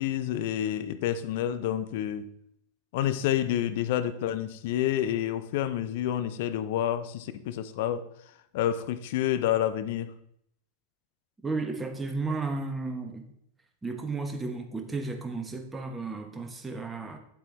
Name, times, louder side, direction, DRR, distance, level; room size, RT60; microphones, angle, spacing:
voice 1, 0.0-2.3 2.9-8.1 8.5-10.1, left 11 dB, 50° left, 12 dB, 0.6 m, -29 dB
voice 2, 11.4-13.3 13.8-17.2, right 3 dB, 10° right, 5 dB, 1.1 m, -33 dB
8.5 x 8.2 x 3.1 m, 0.72 s
figure-of-eight pair, 90°, 0 cm